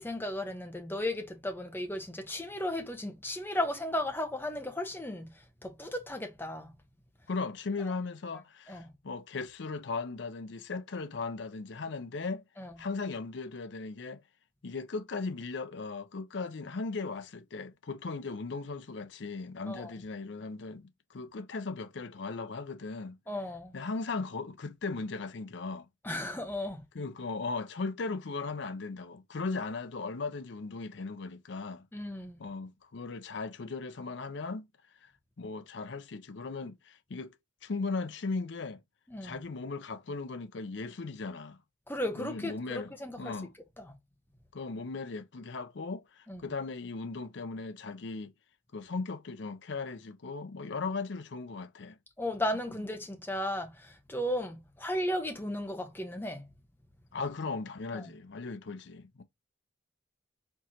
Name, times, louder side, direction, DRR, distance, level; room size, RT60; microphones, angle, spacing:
voice 1, 0.0-5.3 5.6-6.7 7.8-7.9 8.7-8.9 12.6-12.7 19.7-19.9 23.3-23.7 26.0-26.8 31.9-32.4 39.1-39.3 41.9-43.4 43.8-43.9 46.3-46.4 52.2-56.4 57.9-58.1, left 1 dB, 10° left, 0.8 m, -35 dB
voice 2, 7.3-12.4 12.8-14.2 14.6-23.2 23.7-25.9 26.9-31.9 32.4-34.7 35.4-37.3 37.6-38.8 39.2-41.6 42.2-43.5 44.5-48.3 48.7-52.0 57.1-59.2, left 4 dB, 60° left, 0.5 m, -37 dB
4.5 x 3.8 x 2.8 m
head